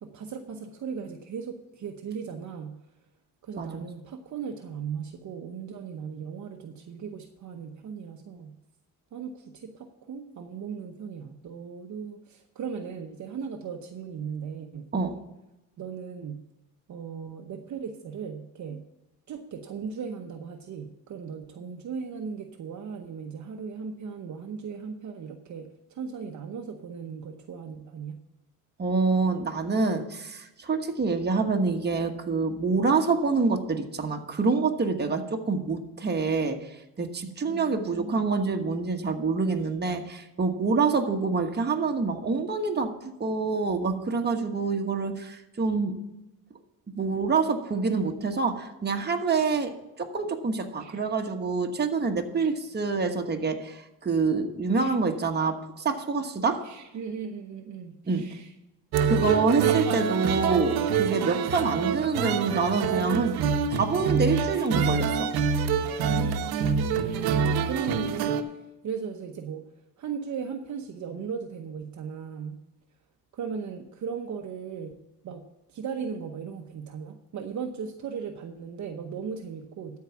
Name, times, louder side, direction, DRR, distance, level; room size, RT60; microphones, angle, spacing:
voice 1, 0.0-2.8 3.4-8.6 9.1-14.9 15.8-16.4 16.9-18.8 19.3-28.2 37.5-38.3 50.8-51.0 52.4-52.5 54.8-55.0 56.6-58.5 64.5-64.7 65.8-69.6 70.0-72.6 73.3-74.9 75.2-80.0, right 6 dB, 50° right, 4 dB, 0.9 m, -37 dB
voice 2, 28.8-36.7 37.0-42.9 43.2-46.0 47.0-56.6 58.1-58.2 59.0-63.4 63.7-65.3, right 4 dB, 25° right, 4 dB, 1.4 m, -26 dB
sound 1, 58.9-68.4, right 6 dB, 80° right, 1.0 m, -26 dB
13.0 x 4.8 x 7.1 m, 0.95 s
cardioid pair, 90°, 37 cm